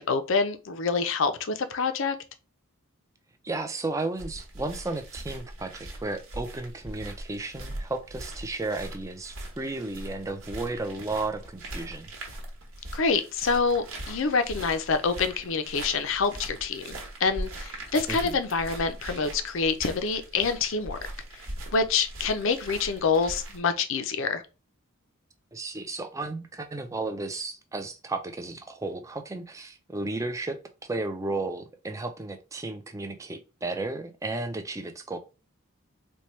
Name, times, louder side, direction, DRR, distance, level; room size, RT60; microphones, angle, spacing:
voice 1, 0.0-2.2 12.9-21.0 21.4-21.5 21.7-24.4, left 4 dB, 60° left, 0.5 m, -26 dB
voice 2, 3.4-12.1 18.1-18.4 25.5-35.2, right 2 dB, 15° right, 0.4 m, -34 dB
sound 1, 4.2-23.6, right 1 dB, 80° right, 1.2 m, -41 dB
4.3 x 2.2 x 3.1 m
head